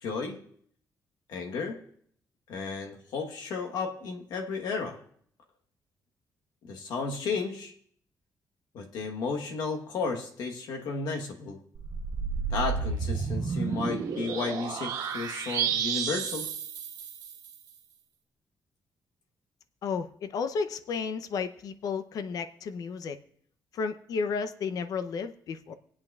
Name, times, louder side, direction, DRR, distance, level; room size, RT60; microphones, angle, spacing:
voice 1, 0.0-0.4 1.3-1.8 2.5-5.0 6.7-7.7 8.7-11.6 12.5-16.5, left 4 dB, 90° left, 3 dB, 1.2 m, -33 dB
sound 1, 11.7-17.6, right 6 dB, 70° right, 1.3 m, -31 dB
voice 2, 19.8-23.2 23.7-25.7, left 5 dB, 65° left, 10 dB, 0.6 m, -32 dB
25.5 x 8.7 x 2.4 m, 0.63 s
cardioid pair, 155°, 7 cm